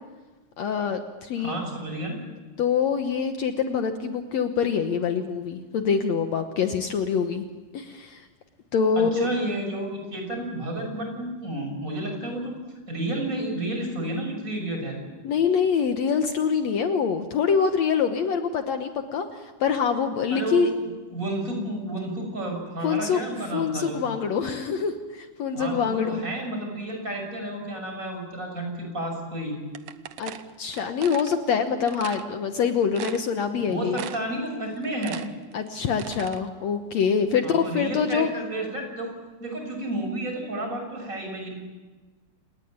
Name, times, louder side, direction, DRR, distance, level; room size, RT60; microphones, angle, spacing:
voice 1, 0.6-1.6 2.6-7.4 7.7-8.3 8.7-9.3 15.2-20.7 22.8-23.2 23.5-26.2 30.2-30.3 30.6-34.0 35.5-38.3, left 6 dB, 65° left, 6 dB, 2.2 m, -25 dB
voice 2, 1.4-2.2 8.9-12.6 12.9-15.0 20.3-24.0 25.5-29.6 33.7-35.2 37.4-39.1 39.4-41.5, right 1 dB, 25° right, 3 dB, 6.8 m, -31 dB
sound 1, 29.7-31.4 31.9-32.3 32.6-32.7 32.9-33.6 33.9-34.4 34.7-36.4, right 10 dB, 65° right, 1.9 m, -38 dB
29.0 x 19.0 x 9.0 m, 1.2 s
omnidirectional pair, 3.6 m